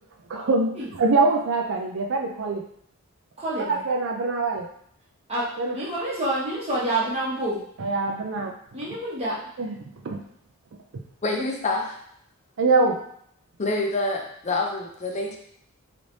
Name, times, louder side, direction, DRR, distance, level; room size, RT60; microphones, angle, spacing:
voice 1, 0.3-2.6 3.7-4.7 5.6-5.7 7.8-8.5 9.6-9.8 10.0-10.2 10.9-11.0 12.6-13.0, right 3 dB, 60° right, 2 dB, 0.5 m, -23 dB
voice 2, 3.4-3.8 5.3-5.5 5.7-7.6 8.7-9.3, right 1 dB, 30° right, -7 dB, 1.1 m, -27 dB
voice 3, 11.2-12.0 13.6-15.4, left 2 dB, 30° left, 2 dB, 0.5 m, -27 dB
3.2 x 3.1 x 2.6 m, 0.67 s
head